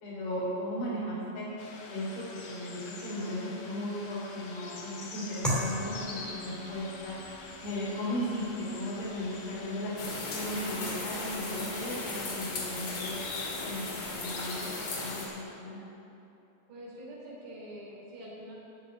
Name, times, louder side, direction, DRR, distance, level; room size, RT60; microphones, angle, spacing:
voice 1, 0.0-1.5 1.9-7.2 7.6-13.2 13.6-15.8, left 1 dB, 85° left, -8 dB, 5.7 m, -36 dB
sound 1, 1.6-15.4, left 3 dB, 60° left, 2.9 m, -45 dB
sound 2, 5.4-14.3, equal, ahead, 0.5 m, -41 dB
sound 3, 10.0-15.2, left 2 dB, 45° left, 2.8 m, -37 dB
voice 2, 16.7-18.5, equal, 70° right, -4 dB, 5.4 m, -45 dB
15.0 x 6.8 x 9.1 m, 2.9 s
omnidirectional pair, 5.0 m